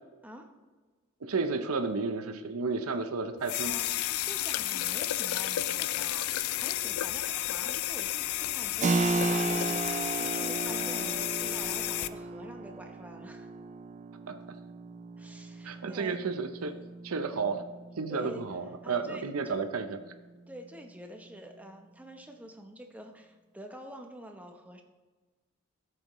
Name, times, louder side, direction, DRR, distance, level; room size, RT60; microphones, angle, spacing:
voice 1, 1.2-3.8 14.3-14.4 15.6-16.7 17.0-17.6 18.0-20.0, right 4 dB, 70° right, 8 dB, 0.7 m, -32 dB
sound 1, 3.4-12.1, left 14 dB, 70° left, 0.4 m, -32 dB
voice 2, 4.2-13.5 15.2-16.2 18.1-18.4 18.8-19.5 20.5-24.8, equal, 5° right, 4 dB, 0.8 m, -47 dB
Keyboard (musical), 8.8-19.2, right 3 dB, 30° right, 0.3 m, -35 dB
13.0 x 7.8 x 3.1 m, 1.3 s
head